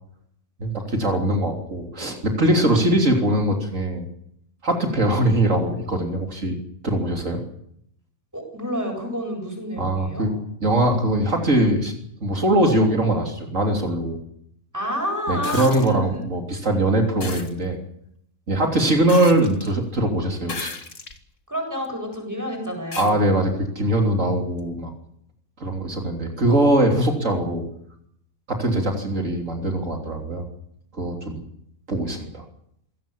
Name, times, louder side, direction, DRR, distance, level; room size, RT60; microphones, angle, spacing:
voice 1, 0.6-4.1 4.6-6.6 6.8-7.4 9.8-10.3 10.6-11.9 12.2-14.2 15.3-17.8 18.5-20.7 23.0-24.9 25.6-27.6 28.5-30.5 30.9-31.4 31.9-32.4, right 1 dB, 60° right, 2 dB, 3.7 m, -21 dB
voice 2, 8.3-10.3 14.7-16.2 21.5-23.2, equal, 10° right, 2 dB, 8.0 m, -29 dB
sound 1, 15.4-15.9 17.2-17.5 19.1-19.7 20.4-21.2 21.8-21.9 22.9-23.1 24.6-24.7, left 4 dB, 60° left, 2.2 m, -34 dB
25.5 x 17.5 x 7.2 m, 0.72 s
omnidirectional pair, 1.5 m